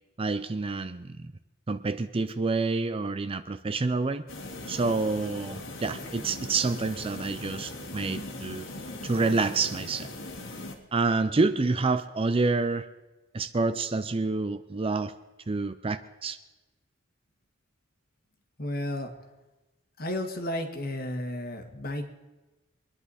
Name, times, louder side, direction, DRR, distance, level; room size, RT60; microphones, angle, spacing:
voice 1, 0.2-1.1 1.7-4.2 4.7-8.7 9.0-10.1 10.9-12.9 13.3-15.1 15.5-16.4, right 3 dB, 25° right, 11 dB, 0.5 m, -28 dB
sound 1, 4.3-10.8, left 2 dB, 65° left, 1.9 m, -40 dB
voice 2, 18.6-19.1 20.0-22.1, left 1 dB, 45° left, 5 dB, 1.7 m, -33 dB
24.5 x 10.5 x 4.2 m, 1.1 s
head